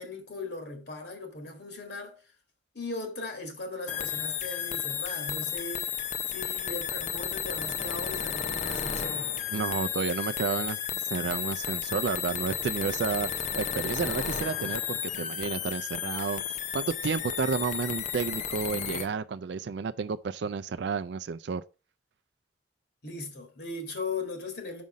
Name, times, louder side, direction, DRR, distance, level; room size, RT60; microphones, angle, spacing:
voice 1, 0.0-2.2 2.7-5.9 6.3-9.3 23.0-24.8, left 3 dB, 55° left, 1.9 m, -38 dB
sound 1, 3.9-19.1, left 8 dB, 40° left, 0.5 m, -33 dB
voice 2, 9.5-21.6, right 5 dB, 60° right, 0.4 m, -31 dB
5.5 x 5.1 x 6.1 m
head